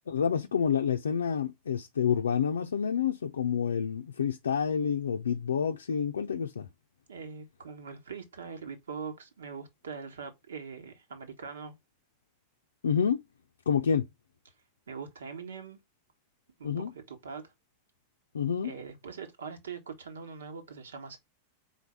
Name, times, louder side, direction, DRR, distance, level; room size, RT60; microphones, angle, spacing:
voice 1, 0.1-6.7 12.8-13.2 13.7-14.1 16.6-16.9 18.3-18.7, left 7 dB, 70° left, 0.5 m, -28 dB
voice 2, 7.1-11.7 14.9-15.8 16.6-17.5 18.6-21.2, right 5 dB, 65° right, 1.4 m, -42 dB
4.6 x 3.9 x 5.3 m
figure-of-eight pair, 90°, 0 cm